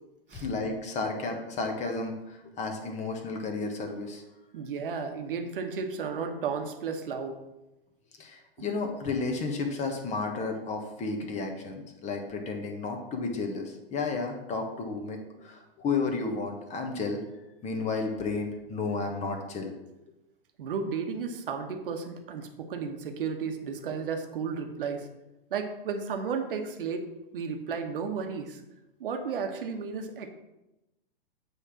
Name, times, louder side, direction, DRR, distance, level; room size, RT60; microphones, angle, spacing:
voice 1, 0.3-4.2 8.2-17.2 17.6-19.7, left 3 dB, 25° left, 3 dB, 1.2 m, -32 dB
voice 2, 4.5-7.4 20.6-25.1 25.5-27.1 27.3-28.6 29.0-30.3, right 5 dB, 65° right, 5 dB, 1.1 m, -33 dB
8.3 x 3.5 x 5.9 m, 0.97 s
hypercardioid pair, 115°, 29 cm